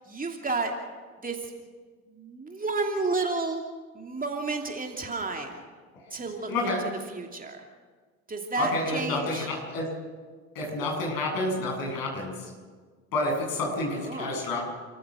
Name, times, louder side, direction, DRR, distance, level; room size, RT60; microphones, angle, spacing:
voice 1, 0.1-0.7 1.2-1.5 2.1-3.6 3.9-5.6 6.1-6.7 7.1-7.6 8.3-9.5 13.9-14.4, right 3 dB, 20° right, 2 dB, 2.8 m, -31 dB
voice 2, 6.5-6.8 8.6-9.9 10.5-12.5 13.1-14.6, left 2 dB, 55° left, 0 dB, 7.9 m, -29 dB
29.5 x 14.5 x 6.6 m, 1.5 s
figure-of-eight pair, 65°, 42 cm